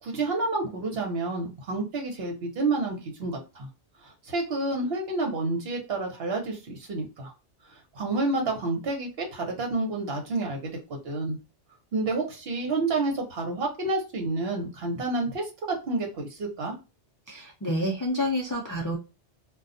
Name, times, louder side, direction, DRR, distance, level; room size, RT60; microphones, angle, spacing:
voice 1, 0.0-3.7 4.0-7.3 7.9-10.7 11.0-11.4 11.9-16.7, right 2 dB, 65° right, 2 dB, 1.1 m, -29 dB
voice 2, 17.3-19.0, equal, 35° left, -2 dB, 0.3 m, -28 dB
2.3 x 2.3 x 2.5 m, 0.30 s
omnidirectional pair, 1.1 m